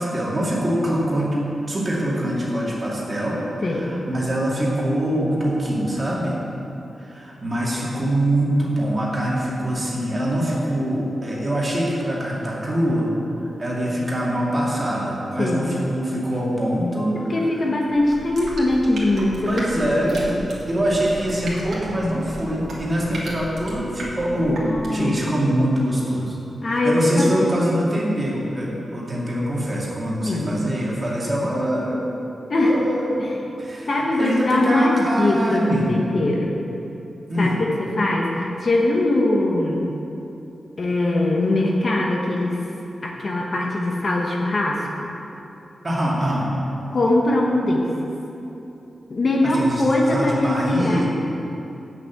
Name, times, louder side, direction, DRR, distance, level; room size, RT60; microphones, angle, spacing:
voice 1, 0.0-1.4 1.7-6.4 7.0-13.1 13.6-17.3 19.5-20.2 20.7-24.6 24.9-26.4 26.6-32.0 32.5-33.1 33.6-35.9 37.3-37.5 45.8-46.5 49.4-49.8 50.1-51.1, equal, 25° right, -5 dB, 2.2 m, -24 dB
voice 2, 15.4-15.7 17.3-19.6 20.0-20.6 24.4-25.1 26.6-27.5 30.2-30.6 32.5-32.8 33.2-33.3 33.9-36.6 37.4-39.9 40.8-42.6 43.0-45.1 46.9-47.9 49.1-51.0, left 2 dB, 40° left, -1 dB, 1.1 m, -21 dB
sound 1, 17.9-25.1, right 1 dB, 65° right, 2.3 m, -35 dB
8.2 x 7.2 x 8.3 m, 2.9 s
wide cardioid pair, 175°, 0 cm